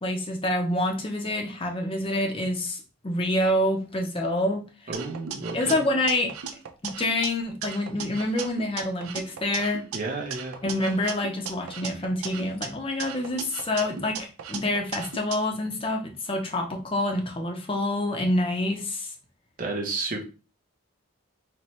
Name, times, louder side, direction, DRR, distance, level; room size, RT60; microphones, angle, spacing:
voice 1, 0.0-4.6 5.5-6.3 6.8-9.9 10.6-14.2 14.5-19.1, left 1 dB, 25° left, 3 dB, 0.6 m, -27 dB
voice 2, 4.9-5.7 9.9-10.6 19.6-20.2, right 3 dB, 40° right, 1 dB, 0.7 m, -31 dB
sound 1, 4.9-7.3 7.6-10.0 10.3-12.7 13.0-15.4, right 7 dB, 85° right, 0.5 m, -37 dB
4.2 x 2.2 x 3.0 m, 0.33 s
head